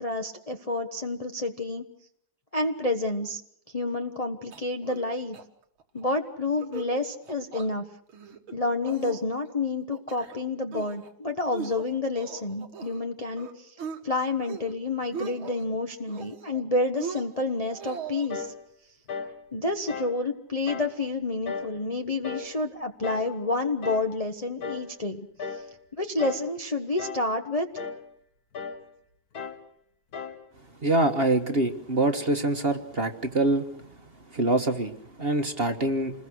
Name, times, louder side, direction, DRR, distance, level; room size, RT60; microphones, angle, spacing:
voice 1, 0.0-1.9 2.5-3.4 3.7-5.4 5.9-7.9 8.5-13.8 14.0-18.5 19.5-25.3 25.5-25.6 26.0-27.7, left 2 dB, 25° left, 4 dB, 1.0 m, -29 dB
sound 1, 4.5-5.1 5.3-5.4 5.8-6.1 6.5-6.9 7.2-7.7 8.1-8.5 8.9-9.5 9.9-10.4 10.7-11.1 11.5-13.0 13.4-14.0 14.4-14.7 15.0-15.6 16.1-16.6 17.0-18.3, right 6 dB, 90° right, 2.6 m, -39 dB
sound 2, 18.3-18.6 19.1-19.4 19.9-20.2 20.7-20.9 21.5-21.8 22.2-22.5 23.0-23.3 23.8-24.1 24.6-24.9 25.4-25.7 26.2-26.5 27.0-27.3 27.8-28.0 28.5-28.8 29.3-29.6 30.1-30.4, left 5 dB, 50° left, 2.0 m, -36 dB
voice 2, 30.8-33.8 34.3-36.1, right 2 dB, 30° right, 5 dB, 1.5 m, -25 dB
28.5 x 21.0 x 6.3 m, 0.68 s
omnidirectional pair, 2.2 m